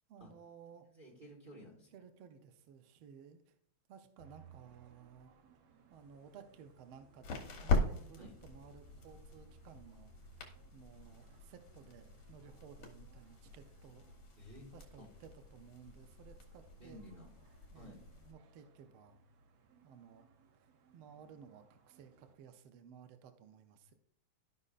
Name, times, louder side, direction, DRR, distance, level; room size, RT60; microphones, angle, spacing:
voice 1, 0.1-0.8 1.5-1.6 1.9-3.5 3.9-5.3 5.9-10.5 10.7-14.0 14.7-17.0 17.7-19.2 19.8-20.3 20.6-20.7 20.9-23.9, right 7 dB, 85° right, 8 dB, 1.1 m, -57 dB
voice 2, 0.9-1.9 8.1-8.3 14.4-14.7 15.0-15.1 16.8-17.3 17.7-18.0, equal, 30° right, -3 dB, 1.0 m, -53 dB
sound 1, 4.2-22.3, right 4 dB, 70° right, 1.4 m, -65 dB
sound 2, 5.9-18.3, left 3 dB, 65° left, 2.2 m, -42 dB
13.5 x 5.4 x 2.5 m, 0.66 s
omnidirectional pair, 3.3 m